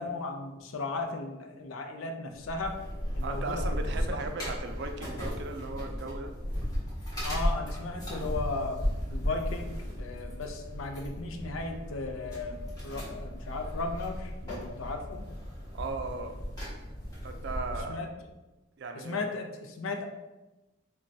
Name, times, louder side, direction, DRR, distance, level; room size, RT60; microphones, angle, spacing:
voice 1, 0.0-2.8 3.1-4.2 7.2-15.3 17.9-18.1 18.9-20.1, left 3 dB, 80° left, 4 dB, 0.5 m, -36 dB
sound 1, 2.3-17.8, equal, 20° left, 1.3 m, -35 dB
voice 2, 3.2-6.3 15.7-16.3 17.2-18.1 18.8-19.3, right 3 dB, 55° right, 6 dB, 0.4 m, -37 dB
5.1 x 2.2 x 2.7 m, 1.1 s
head